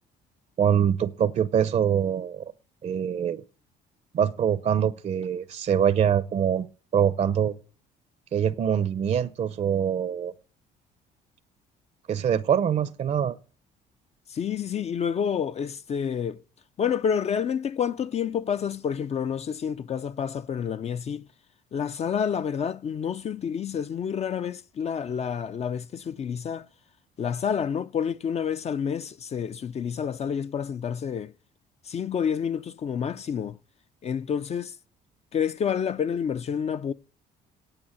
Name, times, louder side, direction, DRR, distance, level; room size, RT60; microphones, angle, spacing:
voice 1, 0.6-2.5 2.8-3.4 4.1-6.7 6.9-7.5 8.3-10.3 12.1-13.4, right 8 dB, 40° right, 0.7 m, -24 dB
voice 2, 14.3-16.4 16.8-21.3 21.7-26.7 27.2-31.3 31.9-33.6 34.0-34.7 35.3-36.9, left 7 dB, 40° left, 0.6 m, -29 dB
8.9 x 8.8 x 8.9 m
cardioid pair, 110°, 17 cm